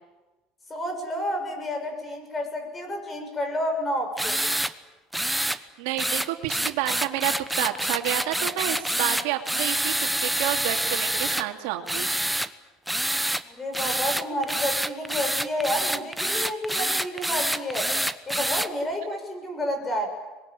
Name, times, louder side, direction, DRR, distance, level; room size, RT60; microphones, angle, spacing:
voice 1, 0.7-4.4 13.4-17.9 18.3-20.1, left 1 dB, 20° left, 5 dB, 6.8 m, -30 dB
sound 1, 4.2-4.7 5.1-5.6 6.0-11.4 11.9-12.5 12.9-13.4 13.7-18.7, right 1 dB, 5° right, 1.0 m, -27 dB
voice 2, 5.5-12.1, right 13 dB, 80° right, 4 dB, 2.6 m, -30 dB
25.5 x 21.5 x 9.1 m, 1.2 s
supercardioid pair, 115°, 0 cm